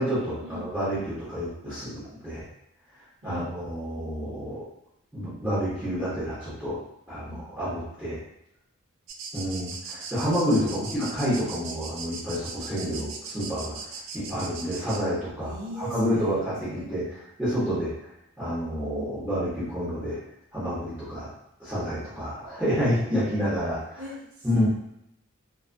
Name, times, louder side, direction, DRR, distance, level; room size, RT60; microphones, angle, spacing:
voice 1, 0.0-2.5 3.2-4.6 5.1-6.8 7.1-8.2 9.3-17.9 18.4-20.2 20.5-21.3 21.6-24.0 24.4-24.7, equal, 10° right, -13 dB, 0.9 m, -29 dB
voice 2, 3.2-3.5 7.2-7.4 10.6-11.1 15.4-16.9 17.6-17.9 23.0-23.3 24.0-24.7, equal, 90° right, -5 dB, 0.7 m, -41 dB
sound 1, 9.1-15.0, right 5 dB, 60° right, 0.3 m, -39 dB
2.3 x 2.2 x 2.5 m, 0.80 s
head